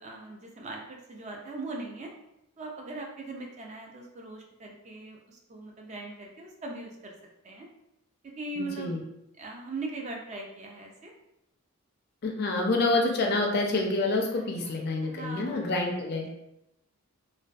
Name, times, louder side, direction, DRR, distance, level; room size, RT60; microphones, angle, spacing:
voice 1, 0.0-2.1 2.6-7.1 7.4-7.7 8.2-9.0 9.4-11.1 14.3-14.7 15.0-15.7, right 2 dB, 30° right, 0 dB, 0.3 m, -40 dB
voice 2, 8.6-9.0 12.2-16.3, left 2 dB, 45° left, 1 dB, 0.4 m, -27 dB
2.5 x 2.2 x 2.2 m, 0.85 s
head